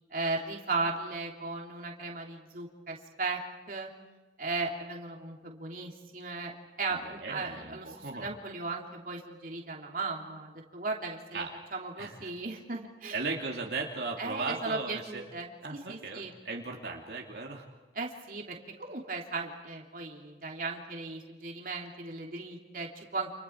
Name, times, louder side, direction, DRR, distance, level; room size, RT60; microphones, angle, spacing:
voice 1, 0.1-3.9 4.4-7.9 8.2-11.4 11.7-13.2 14.2-16.4 17.9-23.3, right 3 dB, 50° right, 0 dB, 3.2 m, -36 dB
voice 2, 7.0-8.3 11.3-11.5 12.0-12.3 13.1-15.2 15.6-17.7, right 3 dB, 70° right, -1 dB, 2.8 m, -37 dB
30.0 x 28.5 x 4.7 m, 1.3 s
head